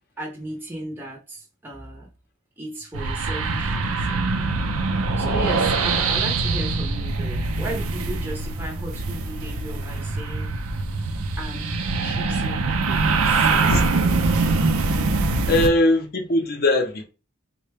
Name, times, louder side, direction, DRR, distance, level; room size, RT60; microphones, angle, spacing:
voice 1, 0.2-2.1 2.6-4.3 5.2-10.6 11.4-13.7, right 1 dB, 10° right, 0.6 m, -35 dB
sound 1, 2.9-15.7, right 3 dB, 70° right, 0.5 m, -23 dB
voice 2, 13.5-14.2 15.5-17.0, left 1 dB, 45° left, 0.7 m, -21 dB
3.7 x 2.1 x 3.3 m
head